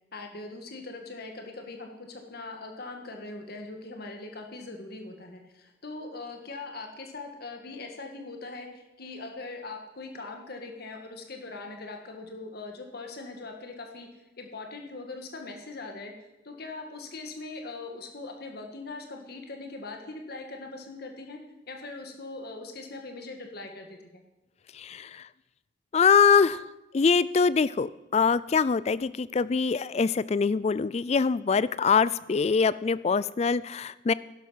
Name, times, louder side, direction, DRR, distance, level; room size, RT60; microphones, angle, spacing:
voice 1, 0.1-14.1 14.4-16.1 16.4-21.4 21.7-24.2, left 3 dB, 50° left, 3 dB, 1.8 m, -41 dB
voice 2, 24.7-25.3 25.9-26.6 26.9-34.1, left 5 dB, 35° left, 18 dB, 0.3 m, -24 dB
11.5 x 11.0 x 5.7 m, 1.0 s
head